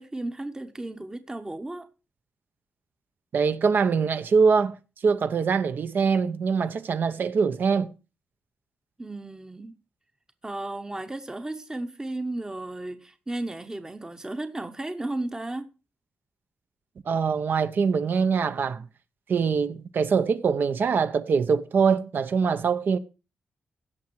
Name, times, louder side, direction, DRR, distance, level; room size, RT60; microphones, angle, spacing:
voice 1, 0.0-1.9 9.0-9.7 10.4-15.7, right 2 dB, 15° right, 0.9 m, -34 dB
voice 2, 3.3-4.8 5.0-7.9 17.1-18.8 19.3-23.0, right 5 dB, 60° right, 0.8 m, -23 dB
16.0 x 6.0 x 4.6 m
cardioid pair, 85°, 4 cm